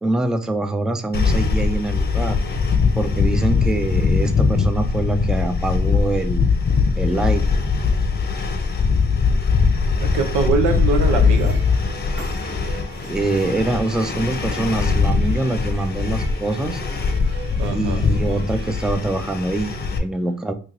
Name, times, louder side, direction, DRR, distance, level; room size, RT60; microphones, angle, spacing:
voice 1, 0.0-2.4 3.0-6.5 7.0-7.4 13.0-16.8 17.7-20.5, right 2 dB, ahead, 0.3 m, -24 dB
sound 1, 1.1-20.0, left 5 dB, 35° left, 0.7 m, -21 dB
voice 2, 10.0-11.6 17.6-18.0, right 5 dB, 90° right, 0.7 m, -22 dB
sound 2, 10.6-19.0, right 3 dB, 35° right, 1.1 m, -41 dB
3.1 x 2.8 x 3.7 m
cardioid pair, 90°, 30 cm